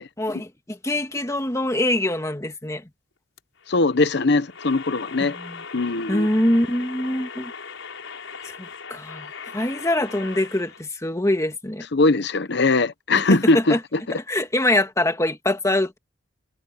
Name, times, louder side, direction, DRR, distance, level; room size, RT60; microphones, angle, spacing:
voice 1, 0.2-2.8 5.2-5.6 6.1-7.5 8.4-11.9 13.3-13.8 14.3-16.0, left 1 dB, 15° left, 1.8 m, -24 dB
sound 1, 3.4-10.8, left 5 dB, 85° left, 5.4 m, -39 dB
voice 2, 3.7-5.4 5.7-6.3 11.9-14.2, left 3 dB, 60° left, 0.9 m, -21 dB
head